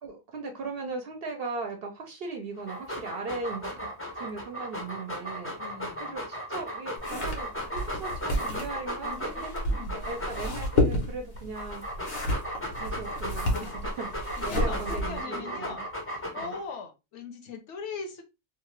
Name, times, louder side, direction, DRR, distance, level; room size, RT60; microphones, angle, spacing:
voice 1, 0.0-3.9 4.1-5.5 6.0-9.6 9.9-12.2 12.8-15.8 16.3-16.6, right 3 dB, 55° right, 4 dB, 0.7 m, -38 dB
Dog, 2.6-10.8 11.4-16.8, equal, 20° left, 0.4 m, -36 dB
voice 2, 5.6-6.2 9.0-10.1 13.4-13.8 14.4-18.2, left 4 dB, 65° left, 5 dB, 0.9 m, -41 dB
sound 1, 7.0-15.2, left 1 dB, 90° left, 1.3 m, -31 dB
2.8 x 2.4 x 2.9 m, 0.25 s
omnidirectional pair, 1.4 m